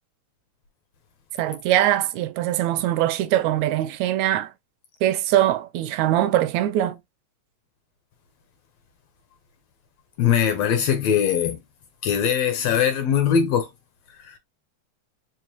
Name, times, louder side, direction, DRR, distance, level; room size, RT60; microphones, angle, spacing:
voice 1, 1.4-4.5 5.0-7.0, right 13 dB, 80° right, 1.7 m, -22 dB
voice 2, 10.2-11.6 12.0-13.7 14.3-14.4, left 8 dB, 75° left, 1.7 m, -21 dB
4.6 x 2.9 x 2.9 m
omnidirectional pair, 3.5 m